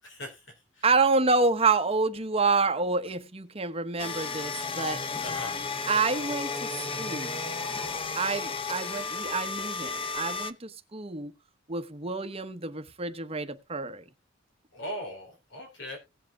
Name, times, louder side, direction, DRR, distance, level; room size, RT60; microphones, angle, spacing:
voice 1, 0.0-0.9 5.2-5.7 14.7-16.0, equal, 70° left, 3.8 m, -40 dB
voice 2, 0.8-5.0 5.9-7.5 8.2-11.3 11.7-14.0, right 4 dB, 30° right, 1.0 m, -28 dB
sound 1, 4.0-10.5, left 4 dB, 30° left, 0.8 m, -33 dB
18.5 x 7.5 x 2.3 m
head